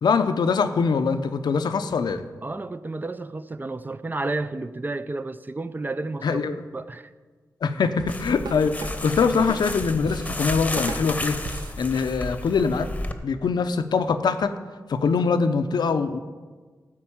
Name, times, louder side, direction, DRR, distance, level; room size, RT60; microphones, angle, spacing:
voice 1, 0.0-2.2 6.2-6.6 7.6-11.4 11.8-12.9 13.2-14.5 14.9-16.2, left 5 dB, 90° left, 0.7 m, -23 dB
voice 2, 2.4-7.1, right 2 dB, 25° right, 0.5 m, -31 dB
sound 1, 8.0-11.8, right 3 dB, 75° right, 0.9 m, -36 dB
sound 2, 8.1-13.1, left 1 dB, 20° left, 1.0 m, -32 dB
13.5 x 4.6 x 8.7 m
cardioid pair, 75°, 7 cm